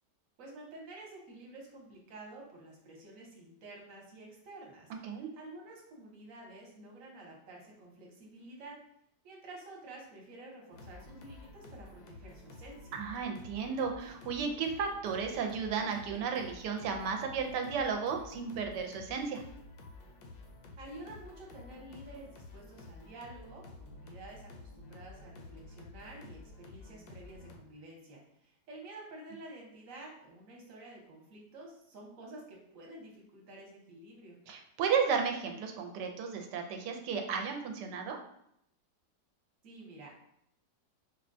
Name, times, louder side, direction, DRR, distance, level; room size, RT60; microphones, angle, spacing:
voice 1, 0.4-8.8 9.2-13.0 20.8-34.4 39.6-40.1, right 2 dB, 60° right, -1 dB, 1.2 m, -50 dB
sound 1, 10.7-27.6, left 2 dB, 75° left, 1.1 m, -51 dB
voice 2, 12.9-19.4 34.5-38.2, right 6 dB, 80° right, 4 dB, 1.2 m, -34 dB
4.7 x 2.2 x 2.5 m, 0.74 s
omnidirectional pair, 1.8 m